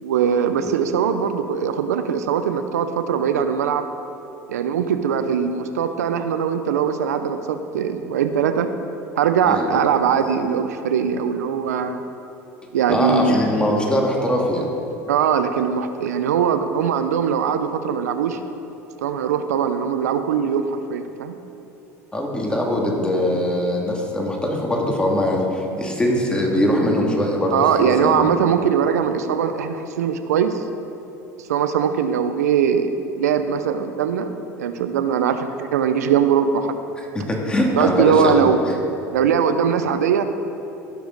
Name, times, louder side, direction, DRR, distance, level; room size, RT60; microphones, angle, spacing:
voice 1, 0.0-3.9 4.5-8.7 9.2-12.0 12.7-13.4 15.1-18.4 19.0-21.3 27.5-30.6 31.5-32.9 33.2-34.3 34.6-36.7 37.8-38.6 39.1-40.2, right 7 dB, 90° right, 9 dB, 0.6 m, -21 dB
voice 2, 9.4-9.8 12.9-14.7 22.1-28.3 37.1-38.5, left 1 dB, 10° left, -1 dB, 2.4 m, -21 dB
16.5 x 7.0 x 4.0 m, 2.9 s
hypercardioid pair, 80°, 8 cm